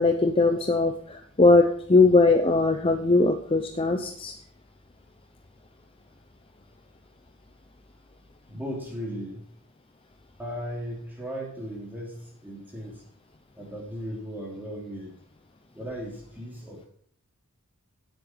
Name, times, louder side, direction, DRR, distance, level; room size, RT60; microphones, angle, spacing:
voice 1, 0.0-4.4, left 3 dB, 25° left, 6 dB, 0.6 m, -20 dB
voice 2, 8.5-9.4 10.4-13.0 13.5-15.2 15.7-16.9, equal, 10° right, -3 dB, 3.2 m, -36 dB
9.7 x 7.9 x 5.5 m, 0.62 s
head